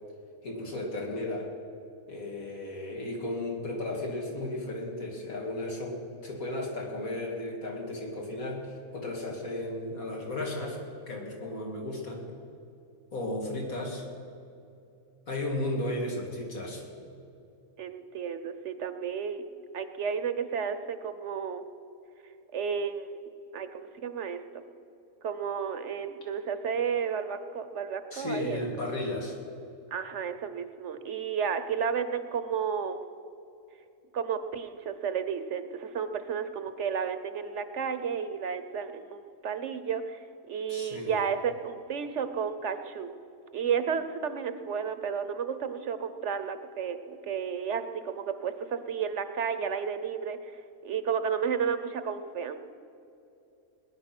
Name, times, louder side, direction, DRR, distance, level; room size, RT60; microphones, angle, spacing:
voice 1, 0.4-1.5 2.1-10.8 11.1-12.3 13.1-14.1 15.3-16.8 28.1-29.4 40.7-41.1, left 1 dB, 90° left, 0 dB, 2.9 m, -34 dB
voice 2, 17.8-19.4 19.7-21.6 22.5-23.2 23.5-24.6 25.2-28.6 29.9-33.0 34.1-43.1 43.5-50.4 50.8-52.6, right 7 dB, 60° right, 10 dB, 1.1 m, -32 dB
20.0 x 10.5 x 6.0 m, 2.7 s
omnidirectional pair, 1.4 m